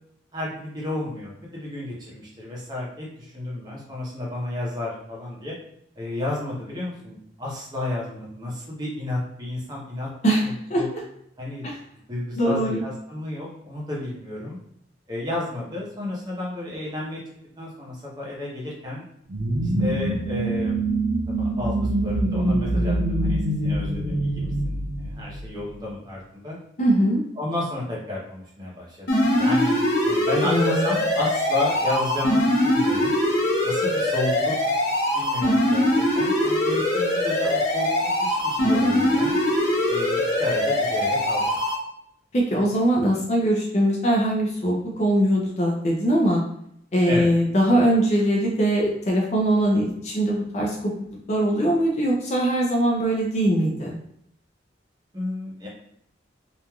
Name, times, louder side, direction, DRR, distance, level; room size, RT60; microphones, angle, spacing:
voice 1, 0.3-5.5 6.0-10.1 10.4-10.9 11.4-11.6 12.1-14.6 15.1-17.2 17.6-19.0 19.8-21.0 21.4-26.6 27.4-29.1 29.4-29.8 30.1-33.1 33.6-34.5 35.0-35.9 36.2-39.4 39.9-41.5 47.1-47.3 55.1-55.7, left 2 dB, 20° right, -4 dB, 0.8 m, -32 dB
voice 2, 12.3-12.8 26.8-27.2 30.4-30.9 42.3-46.4 46.9-50.9 51.3-54.0, right 1 dB, 35° left, -1 dB, 0.5 m, -21 dB
sound 1, 19.3-25.8, right 1 dB, 60° right, 0.4 m, -24 dB
sound 2, 29.1-41.8, left 1 dB, 60° left, 0.8 m, -22 dB
3.0 x 2.5 x 2.3 m, 0.73 s
head